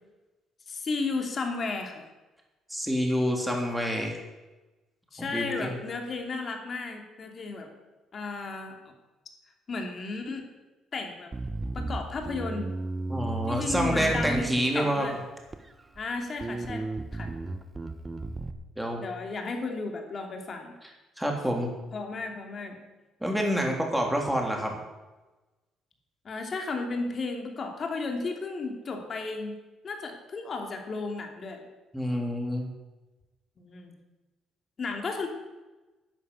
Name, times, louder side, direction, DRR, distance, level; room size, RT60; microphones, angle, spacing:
voice 1, 0.7-2.0 5.1-7.7 8.1-8.7 9.7-10.4 10.9-11.3 11.7-12.7 13.5-15.2 16.0-16.8 17.1-17.3 19.0-20.7 21.9-22.8 26.2-29.6 29.8-31.6 33.6-33.9 34.8-35.3, left 3 dB, 40° left, 3 dB, 2.8 m, -34 dB
voice 2, 2.7-4.2 5.3-5.7 13.1-15.1 18.8-19.0 21.2-21.7 23.2-24.8 31.9-32.7, equal, 5° right, 1 dB, 3.3 m, -27 dB
Bass guitar, 11.3-14.9 15.5-16.1 16.4-18.5, right 2 dB, 20° right, 1.2 m, -34 dB
11.5 x 9.5 x 8.3 m, 1.1 s
cardioid pair, 110°, 0 cm